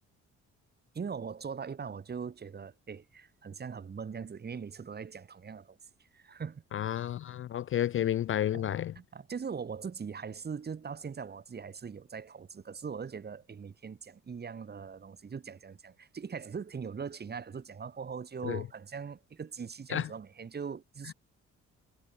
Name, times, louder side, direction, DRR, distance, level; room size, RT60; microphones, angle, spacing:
voice 1, 0.9-5.8 6.1-6.6 8.5-8.7 8.9-21.1, right 6 dB, 35° right, 1.3 m, -41 dB
voice 2, 6.7-8.9 18.4-18.6 19.9-20.1, left 11 dB, 45° left, 0.4 m, -31 dB
cardioid pair, 90°, 30 cm